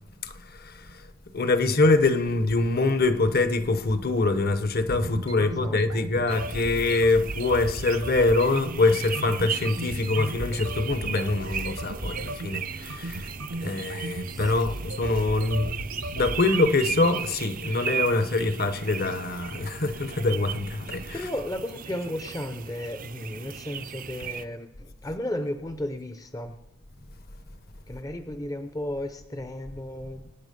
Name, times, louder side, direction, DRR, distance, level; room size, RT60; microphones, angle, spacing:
voice 1, 0.2-13.3 13.6-21.3, left 3 dB, 45° left, 0.9 m, -24 dB
sound 1, 2.0-17.2, right 1 dB, 80° right, 1.3 m, -36 dB
voice 2, 5.4-6.1 14.3-14.4 21.1-26.6 27.9-30.3, left 1 dB, 15° left, 0.6 m, -34 dB
sound 2, 6.3-24.4, right 7 dB, 40° right, 0.6 m, -37 dB
24.5 x 9.5 x 5.3 m
head